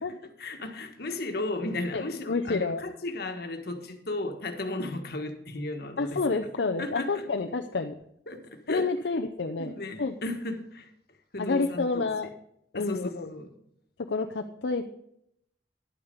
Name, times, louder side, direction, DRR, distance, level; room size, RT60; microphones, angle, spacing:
voice 1, 0.1-6.2 6.8-7.3 8.3-8.9 9.6-10.9 11.3-12.1 12.7-13.5, left 2 dB, 60° left, 1.4 m, -35 dB
voice 2, 1.9-2.8 6.0-7.9 8.7-9.7 10.0-10.1 11.4-12.3 12.7-13.3 14.1-14.9, left 3 dB, 75° left, 0.6 m, -29 dB
11.0 x 8.8 x 5.2 m
head